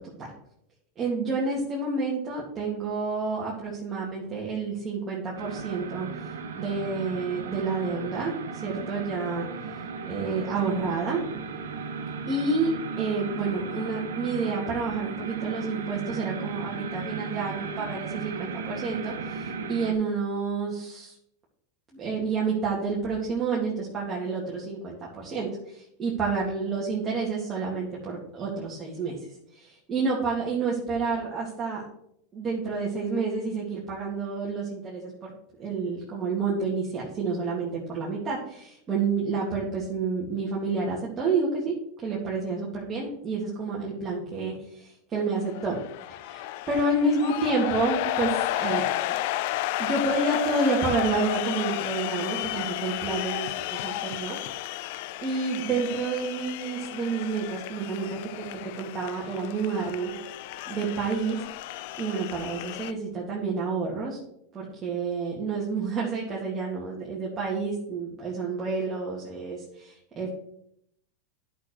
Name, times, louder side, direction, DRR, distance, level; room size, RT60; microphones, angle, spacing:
voice 1, 1.0-6.3 6.5-9.5 10.0-11.2 12.3-12.7 13.0-21.1 21.9-31.8 32.3-35.3 35.6-41.7 42.0-45.8 46.2-48.9 49.8-54.4 55.2-60.1 60.7-61.4 62.0-64.2 64.5-70.3, right 4 dB, 30° right, -4 dB, 2.2 m, -29 dB
sound 1, 5.4-19.9, right 5 dB, 85° right, 1.1 m, -36 dB
sound 2, 45.3-62.9, left 15 dB, 65° left, 0.4 m, -32 dB
11.0 x 6.5 x 3.2 m, 0.74 s
hypercardioid pair, 100°, 0 cm